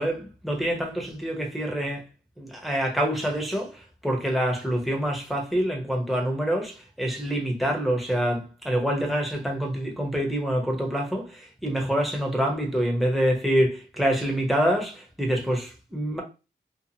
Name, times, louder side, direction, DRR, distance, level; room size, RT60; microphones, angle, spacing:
voice 1, 0.0-2.0 2.4-16.2, equal, ahead, 0.8 m, -26 dB
2.6 x 2.4 x 2.8 m
wide cardioid pair, 95°, 20 cm